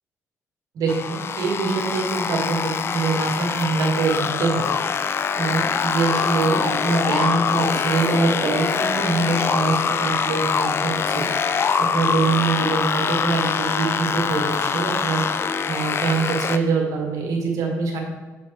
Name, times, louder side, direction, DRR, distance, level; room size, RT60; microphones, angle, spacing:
voice 1, 0.7-4.6 5.0-18.0, right 4 dB, 80° right, 1 dB, 1.6 m, -24 dB
sound 1, 0.9-16.6, left 6 dB, 45° left, 0.4 m, -24 dB
6.8 x 4.4 x 4.8 m, 1.2 s
cardioid pair, 95°, 6 cm